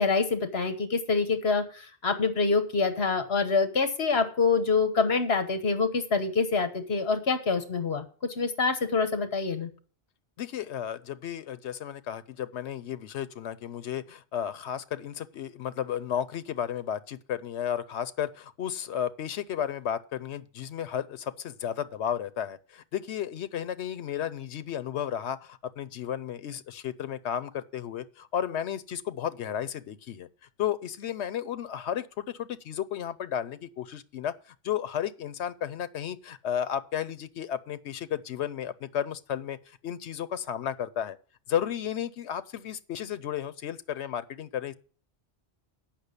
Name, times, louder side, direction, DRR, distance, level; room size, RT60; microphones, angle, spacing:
voice 1, 0.0-9.7, left 4 dB, 70° left, 1.5 m, -26 dB
voice 2, 10.4-30.3 30.6-34.3 34.6-39.6 39.8-41.2 41.5-44.7, left 9 dB, 90° left, 1.0 m, -33 dB
8.5 x 6.0 x 8.1 m
omnidirectional pair, 1.1 m